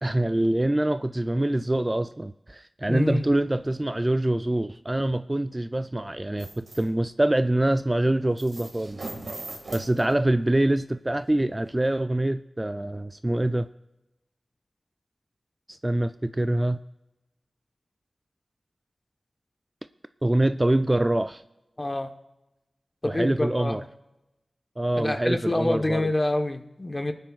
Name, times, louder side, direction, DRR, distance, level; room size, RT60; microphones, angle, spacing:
voice 1, 0.0-9.1 9.7-13.7 15.8-16.8 20.2-21.4 23.0-23.8 24.8-26.1, right 1 dB, 20° right, 0.3 m, -25 dB
voice 2, 2.9-3.3 21.8-22.1 23.0-23.8 25.0-27.1, left 1 dB, 30° left, 1.0 m, -27 dB
sound 1, 6.4-6.8 8.4-10.5 11.2-11.3 11.8-11.9, right 2 dB, 85° right, 1.8 m, -39 dB
28.0 x 9.5 x 2.4 m
wide cardioid pair, 75°, 0 cm